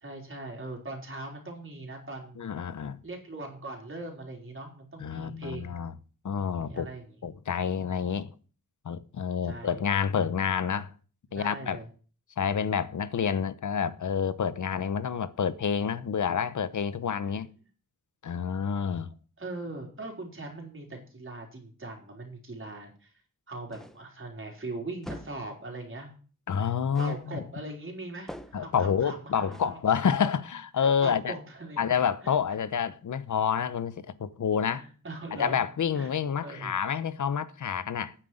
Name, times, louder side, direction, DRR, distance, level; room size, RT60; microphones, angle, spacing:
voice 1, 0.0-2.5 3.0-5.8 6.6-7.0 9.4-9.8 11.3-11.9 17.2-17.3 19.4-23.1 23.5-26.1 26.6-26.7 27.0-29.8 31.0-31.8 32.2-32.3 34.7-35.6 35.9-36.1 36.4-36.8, right 2 dB, 40° right, 3.9 m, -40 dB
voice 2, 2.4-3.0 5.0-5.9 6.2-6.9 7.2-8.3 8.8-10.9 11.3-11.8 12.4-17.5 18.2-19.1 26.5-27.4 28.5-31.3 31.8-34.9 35.4-38.1, left 7 dB, 60° left, 0.9 m, -28 dB
sound 1, 23.7-24.1 25.0-25.5 26.9-27.3 28.3-28.7 29.5-29.8, equal, ahead, 0.9 m, -44 dB
9.3 x 7.5 x 7.7 m
wide cardioid pair, 130°, 33 cm